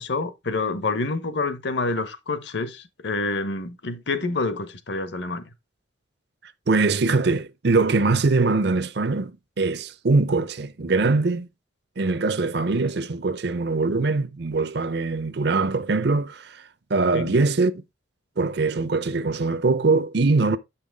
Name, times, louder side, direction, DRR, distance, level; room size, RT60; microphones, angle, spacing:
voice 1, 0.0-5.4 17.1-17.3, left 3 dB, 65° left, 1.0 m, -27 dB
voice 2, 6.7-9.3 9.6-11.5 12.0-16.6 16.9-17.8 18.4-20.6, right 3 dB, 55° right, 0.6 m, -22 dB
8.1 x 5.7 x 3.4 m
head